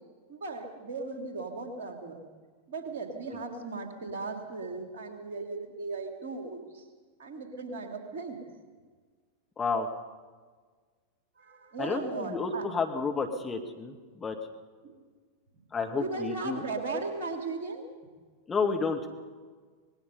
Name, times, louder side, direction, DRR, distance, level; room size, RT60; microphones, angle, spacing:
voice 1, 0.3-2.2 2.7-6.8 7.2-8.5 11.4-12.6 14.8-15.0 15.9-17.8, right 3 dB, 55° right, 4 dB, 3.2 m, -37 dB
voice 2, 9.6-9.9 11.8-14.4 15.7-16.7 18.5-19.1, left 4 dB, 15° left, 3 dB, 2.0 m, -31 dB
25.0 x 20.0 x 5.5 m, 1.5 s
figure-of-eight pair, 90°, 0 cm